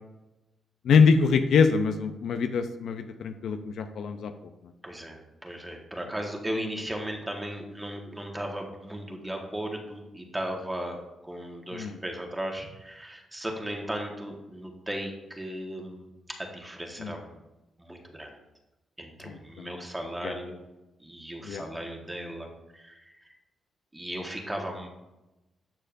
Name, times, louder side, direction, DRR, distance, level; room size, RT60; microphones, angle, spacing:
voice 1, 0.8-4.3 11.7-12.0 17.0-17.2 19.2-19.8 20.2-20.3 21.4-21.6, left 5 dB, 75° left, 8 dB, 0.5 m, -24 dB
voice 2, 4.8-16.1 16.4-17.4 17.8-18.4 19.0-20.6 21.0-22.5 22.7-23.3 23.9-24.9, right 1 dB, 10° right, 1 dB, 1.4 m, -36 dB
11.5 x 6.6 x 2.6 m, 1.0 s
cardioid pair, 100°, 0 cm